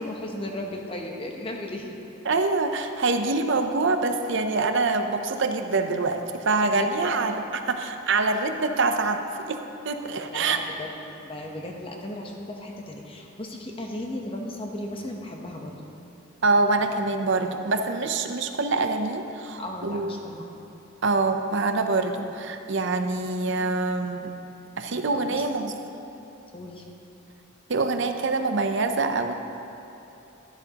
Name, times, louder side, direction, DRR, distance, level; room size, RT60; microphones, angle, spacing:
voice 1, 0.0-2.0 6.7-7.1 10.2-10.9 11.2-15.7 19.6-20.5 25.1-25.4 26.5-26.8, left 1 dB, 25° left, 1 dB, 0.9 m, -36 dB
voice 2, 2.3-9.2 9.5-9.6 9.8-10.6 16.4-20.2 21.0-24.3 24.8-25.7 27.7-29.3, right 3 dB, 60° right, 6 dB, 0.6 m, -25 dB
12.5 x 11.5 x 2.9 m, 3.0 s
head